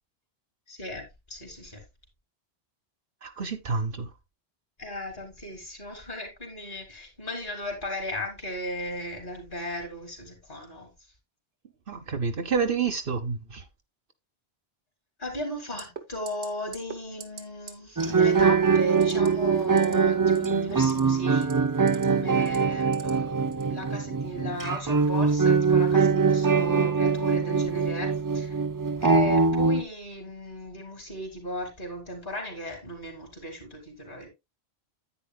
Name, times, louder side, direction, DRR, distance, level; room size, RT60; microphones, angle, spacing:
voice 1, 0.7-1.8 4.8-10.9 15.2-21.5 22.0-28.6 29.0-34.3, equal, 50° left, 3.5 m, -36 dB
voice 2, 3.2-4.1 11.9-13.6, right 5 dB, 55° right, 1.1 m, -29 dB
sound 1, 15.8-16.0 16.3-16.5 16.7-17.0 17.2-17.4 17.7-17.8 19.0-19.3 19.6-19.9 20.3-21.0 21.4-22.0 22.5-23.1 23.5-23.7, right 7 dB, 75° right, 1.5 m, -41 dB
sound 2, 18.0-29.8, right 5 dB, 35° right, 0.3 m, -23 dB
10.0 x 9.0 x 2.2 m
omnidirectional pair, 1.1 m